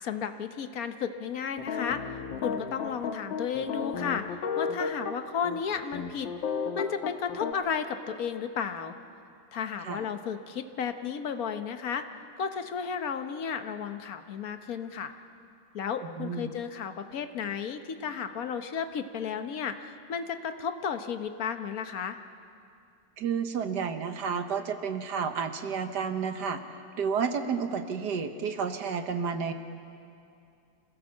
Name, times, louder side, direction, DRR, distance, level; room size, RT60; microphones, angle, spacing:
voice 1, 0.0-2.0 2.4-6.3 6.7-8.9 9.5-12.0 12.4-15.1 15.7-22.2, left 7 dB, 55° left, 8 dB, 1.3 m, -33 dB
sound 1, 1.6-5.2 5.4-5.6 5.9-7.5, left 6 dB, 80° left, 1.9 m, -33 dB
voice 2, 16.0-16.5 23.2-26.6 27.0-29.5, right 6 dB, 65° right, 8 dB, 1.6 m, -31 dB
27.0 x 16.5 x 7.2 m, 2.5 s
omnidirectional pair, 2.1 m